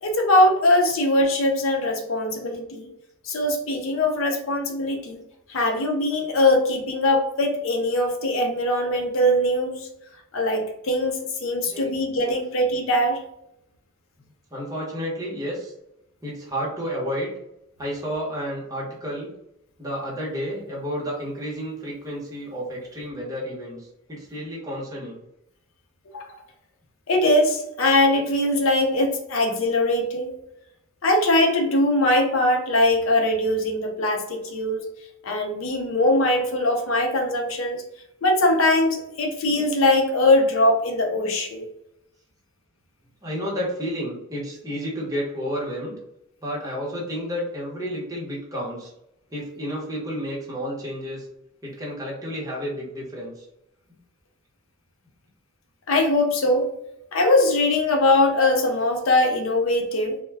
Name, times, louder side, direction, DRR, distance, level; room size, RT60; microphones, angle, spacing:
voice 1, 0.0-2.9 3.2-5.2 5.5-9.9 10.3-13.2 26.1-26.4 27.1-30.4 31.0-34.8 35.2-37.8 38.2-41.7 55.9-56.7 57.1-60.2, left 1 dB, 70° left, 3 dB, 0.6 m, -21 dB
voice 2, 14.5-15.7 16.2-17.3 17.8-19.3 19.8-25.2 43.2-46.0 46.4-48.9 49.3-51.3 51.6-53.4, equal, 15° right, -5 dB, 0.8 m, -31 dB
2.2 x 2.2 x 3.3 m, 0.83 s
head